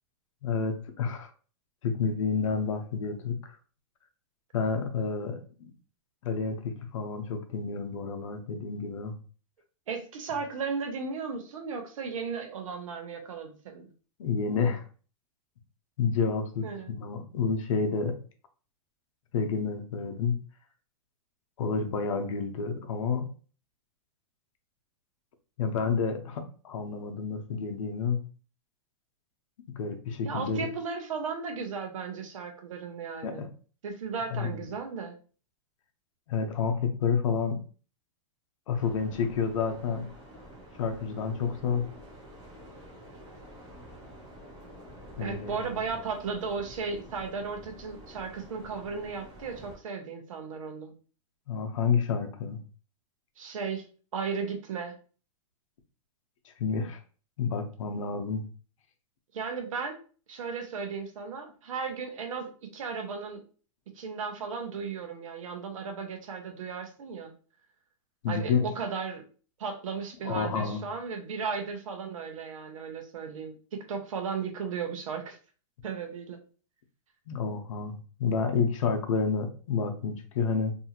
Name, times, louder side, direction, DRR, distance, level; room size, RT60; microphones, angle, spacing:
voice 1, 0.4-1.3 1.8-3.4 4.5-5.7 6.2-9.1 14.2-14.8 16.0-16.7 17.0-18.1 19.3-20.4 21.6-23.3 25.6-28.2 29.7-30.7 33.2-33.5 34.3-34.6 36.3-37.6 38.7-40.0 40.8-41.8 45.2-45.8 51.5-52.6 56.4-57.0 57.4-58.5 68.2-68.7 70.2-70.8 77.3-80.8, left 5 dB, 80° left, 5 dB, 0.6 m, -29 dB
voice 2, 9.9-13.8 16.6-16.9 30.2-33.4 33.8-35.2 45.2-50.9 53.4-53.9 54.1-55.0 59.3-60.0 60.3-63.4 64.0-67.3 68.3-69.3 69.6-75.4 75.8-76.4, right 5 dB, 85° right, 5 dB, 0.7 m, -35 dB
sound 1, 38.7-49.8, equal, 35° right, 0.9 m, -48 dB
2.6 x 2.4 x 2.8 m, 0.39 s
supercardioid pair, 150°, 17 cm